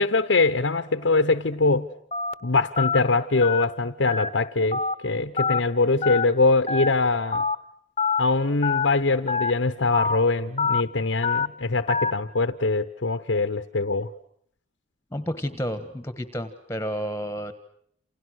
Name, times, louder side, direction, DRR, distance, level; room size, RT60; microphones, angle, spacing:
voice 1, 0.0-1.9 2.4-7.5 8.2-14.1, left 3 dB, 75° left, 9 dB, 1.0 m, -23 dB
Telephone, 2.1-2.3 2.8-3.0 3.4-3.6 4.1-4.3 4.7-4.9 5.4-5.6 6.0-6.2 6.7-6.9 7.3-7.5 8.0-8.2 8.6-8.9 9.3-9.5 9.9-10.2 10.6-10.8 11.2-11.5 11.9-12.1, left 5 dB, 30° left, 1.0 m, -25 dB
voice 2, 15.1-17.5, equal, 15° left, 11 dB, 1.4 m, -31 dB
29.0 x 28.5 x 6.4 m, 0.69 s
head